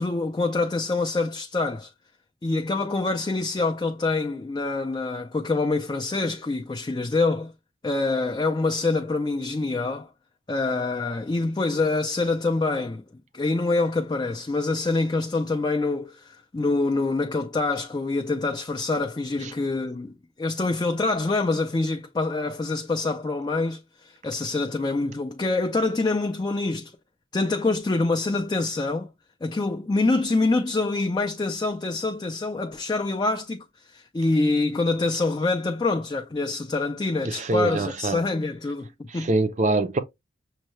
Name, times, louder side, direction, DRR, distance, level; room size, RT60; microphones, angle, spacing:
voice 1, 0.0-1.9 2.4-7.5 7.8-10.1 10.5-13.0 13.3-26.9 27.3-29.1 29.4-39.3, left 3 dB, 20° left, 0.3 m, -25 dB
voice 2, 37.2-38.2 39.1-40.0, right 2 dB, 35° right, 0.5 m, -24 dB
6.4 x 2.2 x 3.0 m
head